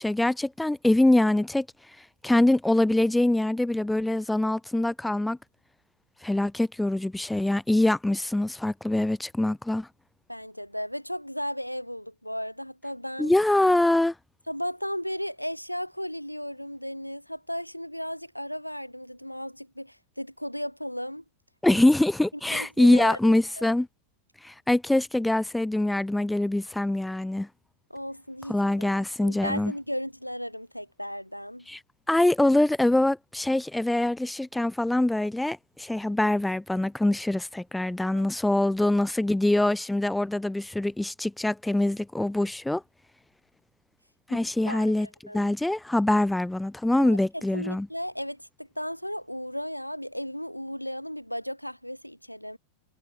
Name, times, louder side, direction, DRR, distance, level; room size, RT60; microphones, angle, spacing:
voice 1, 0.0-1.7 2.2-5.4 6.2-9.9 13.2-14.1 21.6-23.9 24.4-27.5 28.5-29.7 31.7-31.8 32.1-42.8 44.3-45.1 45.3-47.9, left 1 dB, 5° left, 0.3 m, -24 dB
voice 2, 10.3-13.3 14.5-21.2 22.5-23.7 27.9-28.9 29.2-31.7 38.1-38.3 44.3-44.4 44.6-45.5 47.0-52.6, equal, 90° left, 0.8 m, -35 dB
figure-of-eight pair, 90°, 0 cm